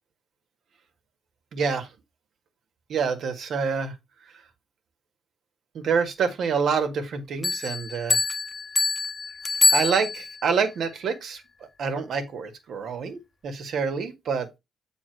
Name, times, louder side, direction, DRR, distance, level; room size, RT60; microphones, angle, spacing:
voice 1, 1.5-1.9 2.9-3.9 5.7-8.2 9.7-11.4 11.8-14.5, right 5 dB, 65° right, 1.7 m, -27 dB
sound 1, 7.4-10.5, left 3 dB, 30° left, 1.1 m, -25 dB
7.8 x 3.9 x 4.6 m
cardioid pair, 90°, 0 cm